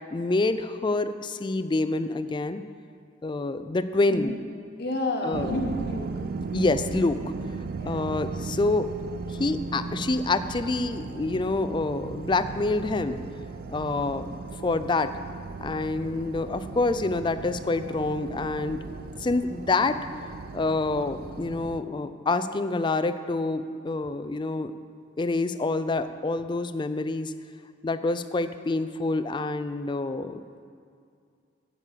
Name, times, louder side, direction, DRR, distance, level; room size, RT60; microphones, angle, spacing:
voice 1, 0.1-2.6 3.2-4.3 5.2-5.6 6.5-7.2 7.8-8.9 9.3-13.2 13.7-15.1 15.6-18.8 19.2-20.0 20.5-24.7 25.2-27.3 27.8-30.4, left 3 dB, 25° left, 11 dB, 0.4 m, -27 dB
voice 2, 4.1-4.4 4.8-6.2 7.7-8.1, left 2 dB, 60° left, 3 dB, 1.3 m, -31 dB
sound 1, 5.3-21.8, right 4 dB, 50° right, 0.4 m, -37 dB
8.3 x 8.3 x 7.4 m, 2.3 s
head